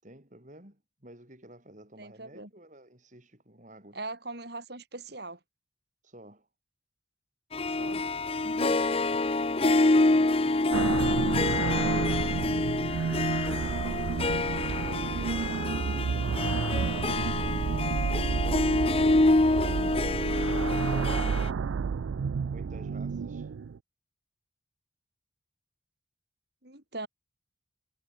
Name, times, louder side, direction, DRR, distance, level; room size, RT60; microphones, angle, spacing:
voice 1, 0.0-4.0 6.0-6.5 14.5-16.7 18.7-21.6 22.5-23.5, right 1 dB, 40° right, 5.0 m, -52 dB
voice 2, 2.0-2.5 3.9-5.4 7.7-8.1 8.4-8.8 26.6-27.1, right 2 dB, 55° right, 6.2 m, -40 dB
Harp, 7.5-21.5, left 2 dB, 30° left, 0.7 m, -27 dB
sound 1, 10.7-23.8, right 6 dB, 85° right, 0.4 m, -30 dB
head